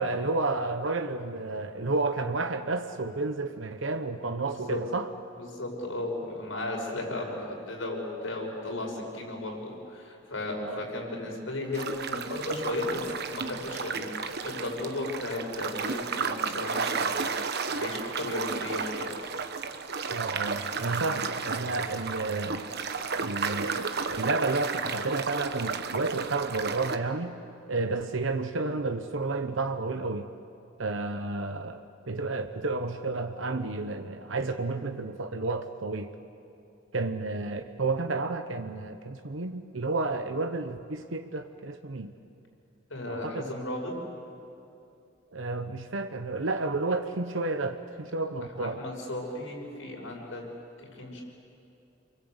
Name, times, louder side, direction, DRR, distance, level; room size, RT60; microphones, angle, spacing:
voice 1, 0.0-5.1 10.6-10.8 20.1-22.7 23.2-27.4 27.7-30.3 30.8-36.2 36.9-42.1 43.1-43.4 45.3-48.8, right 3 dB, 75° right, 7 dB, 1.0 m, -31 dB
voice 2, 4.5-4.8 5.4-19.1 42.9-43.9 48.6-50.4 50.8-51.2, left 2 dB, 90° left, 0 dB, 6.3 m, -35 dB
sound 1, 11.7-27.0, right 5 dB, 55° right, 1.3 m, -33 dB
29.0 x 23.5 x 8.2 m, 2.7 s
head